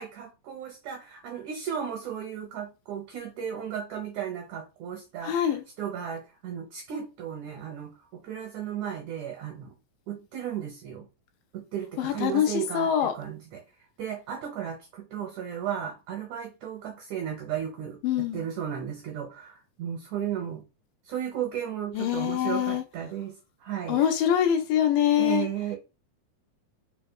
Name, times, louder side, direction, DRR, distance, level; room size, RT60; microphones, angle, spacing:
voice 1, 0.0-7.9 8.2-9.7 10.1-11.1 11.5-13.6 14.0-18.0 18.3-20.6 21.1-23.4 23.6-24.0 25.2-25.8, right 9 dB, 70° right, 1.9 m, -35 dB
voice 2, 5.2-5.6 12.0-13.1 18.0-18.5 21.9-22.8 23.9-25.5, left 10 dB, 85° left, 2.3 m, -24 dB
4.8 x 4.2 x 2.2 m
omnidirectional pair, 4.2 m